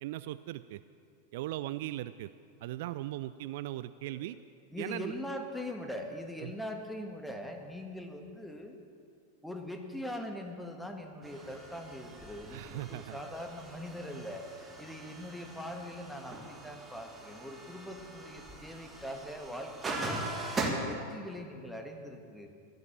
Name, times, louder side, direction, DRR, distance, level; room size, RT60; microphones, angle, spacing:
voice 1, 0.0-0.8 1.3-2.3 2.6-4.4 4.8-5.1 6.4-6.5 12.5-13.2, right 15 dB, 50° right, 14 dB, 0.3 m, -38 dB
voice 2, 4.7-8.8 9.4-20.2 20.5-22.5, left 1 dB, ahead, 3 dB, 1.7 m, -42 dB
sound 1, 11.2-20.7, right 3 dB, 15° right, 2.1 m, -41 dB
16.5 x 12.0 x 7.2 m, 2.3 s
figure-of-eight pair, 90°, 0 cm